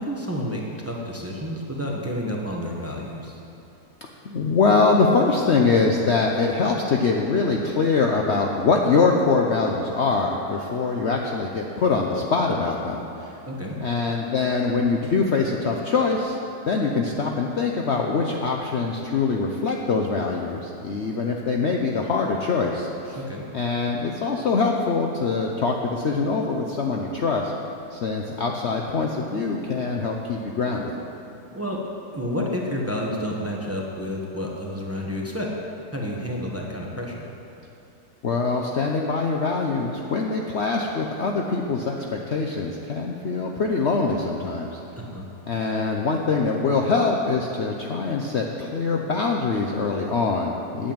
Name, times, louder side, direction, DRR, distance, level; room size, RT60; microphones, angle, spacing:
voice 1, 0.0-3.4 13.5-13.8 23.1-23.4 31.5-31.8 32.1-35.5 35.9-37.3 45.0-45.3, equal, 10° right, -2 dB, 1.1 m, -30 dB
voice 2, 4.2-13.3 13.8-16.4 16.7-23.2 23.5-27.5 27.9-30.9 38.2-44.8 45.5-50.9, left 4 dB, 55° left, 1 dB, 0.8 m, -23 dB
9.0 x 7.8 x 8.8 m, 2.8 s
omnidirectional pair, 1.7 m